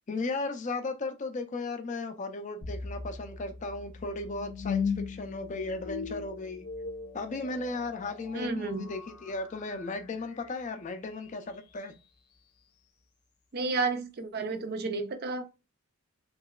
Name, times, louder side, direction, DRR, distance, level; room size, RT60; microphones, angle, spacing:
voice 1, 0.1-6.6 7.1-11.9, left 3 dB, 35° left, 0.4 m, -36 dB
sound 1, 2.6-11.7, left 5 dB, 90° left, 0.7 m, -39 dB
voice 2, 8.3-8.9 13.5-15.5, right 3 dB, 45° right, 0.4 m, -31 dB
3.0 x 2.8 x 2.3 m
head